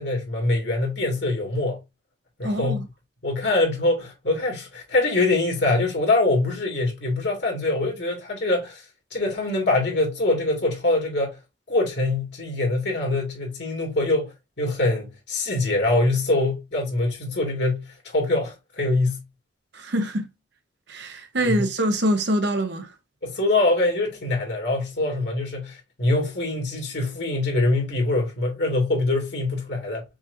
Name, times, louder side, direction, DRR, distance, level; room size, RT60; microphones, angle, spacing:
voice 1, 0.0-1.8 2.4-2.8 3.2-8.8 9.1-11.4 11.7-19.2 21.4-21.7 23.2-30.0, left 2 dB, 65° left, 2.2 m, -24 dB
voice 2, 2.4-2.9 19.7-20.3 20.9-22.9, equal, 65° right, 0.9 m, -24 dB
5.9 x 2.9 x 2.6 m
head